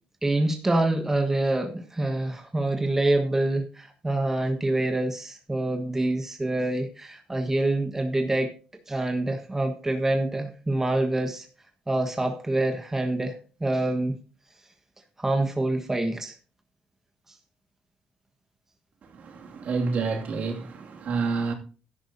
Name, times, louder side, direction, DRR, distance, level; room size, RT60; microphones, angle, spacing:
voice 1, 0.2-8.5 8.9-11.5 11.9-14.1 15.2-16.3, right 2 dB, 15° right, 1.3 m, -26 dB
voice 2, 19.5-21.5, right 4 dB, 60° right, 2.4 m, -28 dB
12.5 x 10.5 x 2.8 m
cardioid pair, 100°, 3 cm